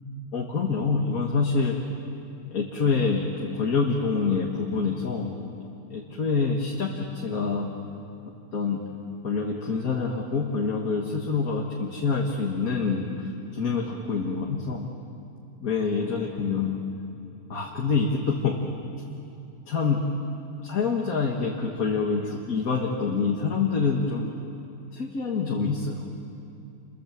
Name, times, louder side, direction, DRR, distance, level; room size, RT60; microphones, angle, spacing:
voice 1, 0.3-1.8 2.5-5.4 5.9-7.7 8.5-8.8 9.2-14.9 15.6-16.8 17.5-18.6 19.7-20.0 20.6-24.4 24.9-26.1, left 4 dB, 65° left, -1 dB, 2.2 m, -26 dB
29.0 x 23.0 x 7.4 m, 2.6 s
omnidirectional pair, 1.6 m